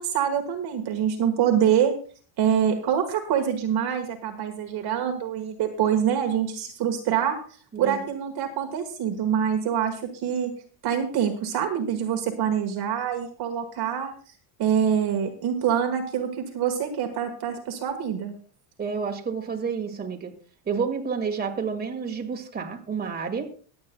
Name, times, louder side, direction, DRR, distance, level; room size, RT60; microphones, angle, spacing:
voice 1, 0.0-1.9 2.4-7.4 7.8-10.5 10.8-14.1 14.6-18.3, right 8 dB, 50° right, 4 dB, 1.6 m, -25 dB
voice 2, 7.7-8.0 18.8-20.3 20.7-23.5, right 5 dB, 20° right, 2 dB, 1.9 m, -30 dB
23.0 x 8.7 x 2.2 m, 0.42 s
cardioid pair, 130°, 50 cm